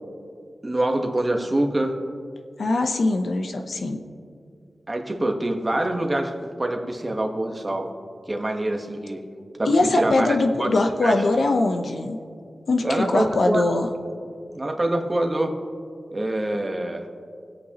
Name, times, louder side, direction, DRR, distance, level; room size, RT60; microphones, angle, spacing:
voice 1, 0.6-2.0 4.9-6.3 6.6-7.9 8.3-9.2 9.6-10.7 11.0-11.1 12.8-13.8 14.5-15.5 16.1-17.0, right 1 dB, 25° right, 3 dB, 1.2 m, -25 dB
voice 2, 2.6-4.0 9.7-12.2 12.7-13.9, left 2 dB, 70° left, 5 dB, 0.9 m, -22 dB
23.5 x 8.4 x 3.0 m, 2.3 s
wide cardioid pair, 115°, 0 cm